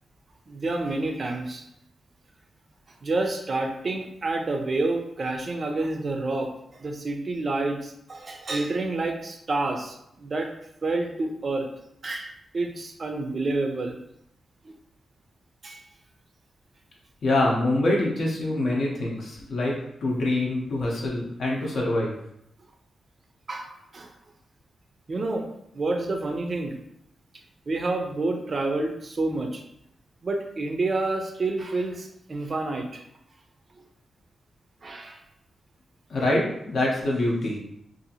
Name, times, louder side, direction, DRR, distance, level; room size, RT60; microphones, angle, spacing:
voice 1, 0.5-1.6 3.0-10.5 10.8-11.7 12.0-14.0 14.6-14.7 15.6-15.8 23.5-24.1 25.1-25.5 25.7-26.8 27.7-29.6 30.2-33.0 34.8-35.2, right 2 dB, 40° right, 4 dB, 0.4 m, -29 dB
voice 2, 17.2-22.1 36.1-37.6, left 1 dB, 60° left, -3 dB, 0.6 m, -25 dB
2.7 x 2.4 x 2.7 m, 0.77 s
wide cardioid pair, 135°, 0 cm